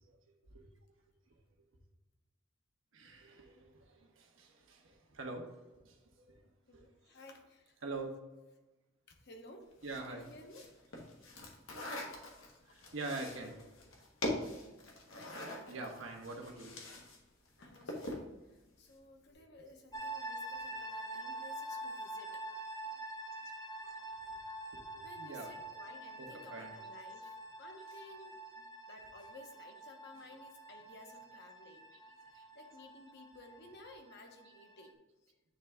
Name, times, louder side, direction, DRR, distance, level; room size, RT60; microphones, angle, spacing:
voice 1, 2.9-5.5 5.8-6.3 7.8-8.1 9.8-10.2 12.9-13.5 15.7-16.7 23.8-23.9 24.7-25.5 26.2-26.7, right 3 dB, 75° right, 2 dB, 1.2 m, -44 dB
voice 2, 6.7-7.8 9.1-9.6 10.0-10.6 12.4-12.6 13.1-13.5 17.6-22.4 25.0-31.8 32.2-34.9 35.3-35.4, left 2 dB, 55° left, 3 dB, 1.0 m, -56 dB
sound 1, 9.8-17.2 17.5-18.3, left 1 dB, 90° left, 1.3 m, -43 dB
sound 2, 19.9-34.9, right 1 dB, 20° left, 0.5 m, -46 dB
9.2 x 3.4 x 3.5 m, 1.1 s
head